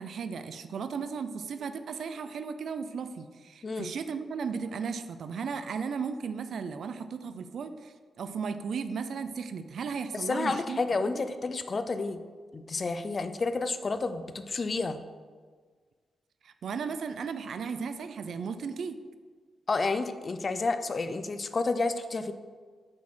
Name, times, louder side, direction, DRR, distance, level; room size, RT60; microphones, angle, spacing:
voice 1, 0.0-10.8 11.1-11.2 16.4-19.0, right 5 dB, 60° right, 10 dB, 0.4 m, -35 dB
voice 2, 10.1-12.2 12.5-15.0 19.7-22.3, left 3 dB, 30° left, 10 dB, 0.4 m, -30 dB
5.9 x 4.4 x 6.0 m, 1.5 s
wide cardioid pair, 165°, 0 cm